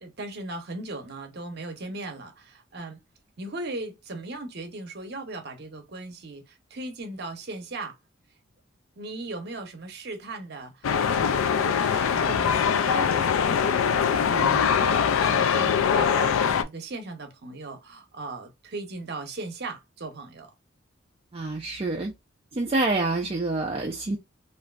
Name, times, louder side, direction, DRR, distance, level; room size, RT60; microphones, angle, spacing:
voice 1, 0.0-3.0 3.4-8.0 9.0-13.4 13.8-20.5, right 2 dB, 50° right, 0.7 m, -38 dB
sound 1, 10.8-16.6, left 7 dB, 85° left, 0.4 m, -22 dB
voice 2, 14.3-14.7 21.3-22.1 22.5-24.2, right 2 dB, 30° right, 0.4 m, -27 dB
3.0 x 2.5 x 2.4 m
head